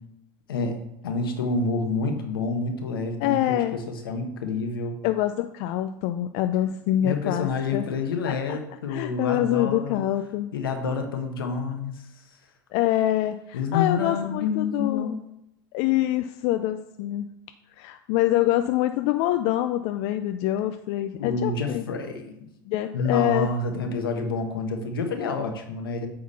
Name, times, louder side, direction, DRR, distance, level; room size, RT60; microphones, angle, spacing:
voice 1, 0.5-5.0 7.0-10.0 10.5-11.9 13.5-15.2 21.2-22.5 22.9-26.1, left 4 dB, 90° left, 4 dB, 1.3 m, -28 dB
voice 2, 3.2-3.8 5.0-7.9 8.3-8.6 8.9-10.5 12.7-15.2 15.7-17.3 17.8-21.8 22.7-23.5, left 13 dB, 60° left, 8 dB, 0.5 m, -25 dB
8.5 x 3.9 x 5.6 m, 0.83 s
hypercardioid pair, 95°, 12 cm